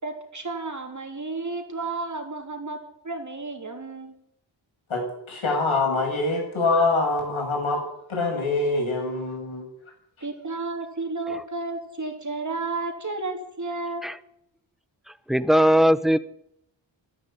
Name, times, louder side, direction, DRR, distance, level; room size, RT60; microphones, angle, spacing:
voice 1, 0.0-2.8 3.0-4.1 10.2-14.1, right 3 dB, 40° right, 5 dB, 3.2 m, -32 dB
voice 2, 4.9-7.8 8.1-9.7, left 3 dB, 85° left, 1 dB, 6.5 m, -24 dB
voice 3, 15.3-16.2, equal, ahead, 15 dB, 0.8 m, -18 dB
13.0 x 11.0 x 9.9 m, 0.77 s
wide cardioid pair, 80°, 47 cm